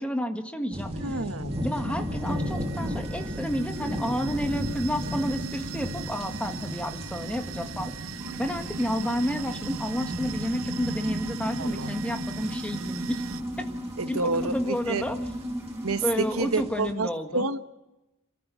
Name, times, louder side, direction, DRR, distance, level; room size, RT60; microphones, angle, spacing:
voice 1, 0.0-0.9 1.6-7.9 8.4-13.2 14.1-15.2 16.0-17.4, equal, 5° left, 5 dB, 1.7 m, -30 dB
sound 1, 0.7-16.9, equal, 30° right, 2.0 m, -36 dB
voice 2, 1.0-1.6 11.6-11.9 14.0-15.1 15.8-17.6, right 3 dB, 85° right, 10 dB, 1.3 m, -29 dB
sound 2, 1.5-13.4, right 5 dB, 65° right, 0.7 m, -39 dB
sound 3, 8.2-16.6, equal, 10° right, 1.5 m, -36 dB
27.0 x 14.0 x 7.1 m, 1.0 s
head